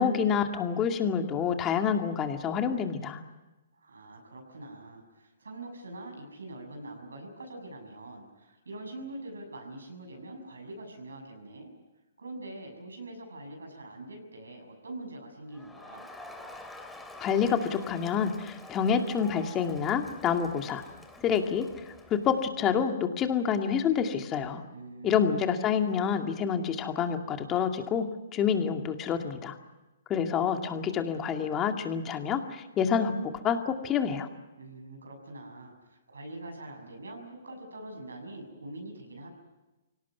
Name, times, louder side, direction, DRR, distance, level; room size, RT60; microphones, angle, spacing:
voice 1, 0.0-3.2 17.2-20.8 21.2-21.7 22.1-24.6 25.0-29.6 30.1-33.1 33.4-34.3, left 7 dB, 25° left, 5 dB, 2.3 m, -28 dB
voice 2, 3.7-11.7 12.2-16.1 24.7-25.3 34.6-39.3, right 2 dB, 85° right, 3 dB, 6.8 m, -44 dB
Crowd, 15.5-22.6, left 2 dB, 5° left, 2.5 m, -47 dB
25.0 x 18.0 x 9.6 m, 1.1 s
hypercardioid pair, 130°, 0 cm